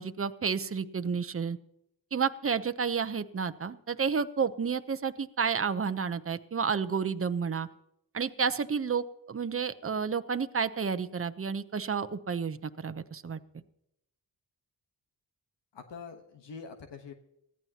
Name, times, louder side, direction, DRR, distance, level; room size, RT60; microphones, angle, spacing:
voice 1, 0.0-1.6 2.1-7.7 8.1-13.4, right 6 dB, 30° right, 11 dB, 0.8 m, -31 dB
voice 2, 15.7-17.1, left 5 dB, 85° left, 5 dB, 1.2 m, -45 dB
20.0 x 14.0 x 2.9 m, 0.79 s
cardioid pair, 60°, 42 cm